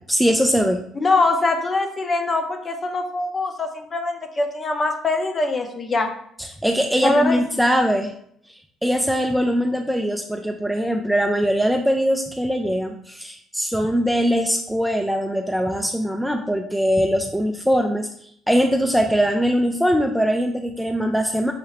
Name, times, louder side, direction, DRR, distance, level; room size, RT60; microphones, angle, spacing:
voice 1, 0.1-0.8 6.4-8.1 8.8-18.1 18.5-21.5, equal, ahead, 3 dB, 0.4 m, -21 dB
voice 2, 1.0-6.1 7.0-7.4, left 2 dB, 35° left, 5 dB, 0.8 m, -22 dB
5.8 x 2.7 x 3.1 m, 0.66 s
cardioid pair, 90°, 0 cm